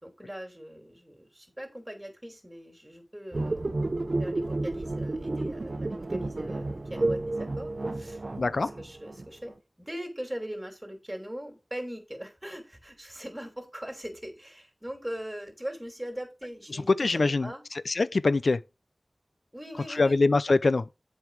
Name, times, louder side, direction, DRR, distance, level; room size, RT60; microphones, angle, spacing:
voice 1, 0.0-17.6 19.5-20.2, equal, 15° right, 3.0 m, -41 dB
sound 1, 3.3-9.5, right 2 dB, 60° right, 0.8 m, -31 dB
voice 2, 8.4-8.7 16.7-17.5 17.9-18.6 19.9-20.9, left 3 dB, 80° left, 0.4 m, -24 dB
7.7 x 5.3 x 4.9 m
wide cardioid pair, 45°, 0 cm